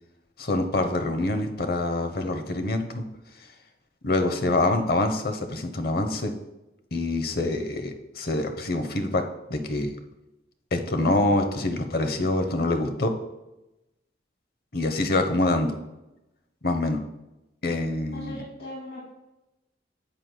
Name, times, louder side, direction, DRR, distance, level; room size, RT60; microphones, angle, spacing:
voice 1, 0.4-3.0 4.0-6.3 6.9-9.2 9.5-9.9 10.7-13.1 14.7-15.7 16.6-17.0 17.6-18.4, left 2 dB, 55° left, 7 dB, 0.9 m, -25 dB
voice 2, 18.1-19.1, left 1 dB, 80° left, -6 dB, 2.3 m, -39 dB
10.0 x 7.7 x 2.3 m, 0.95 s
head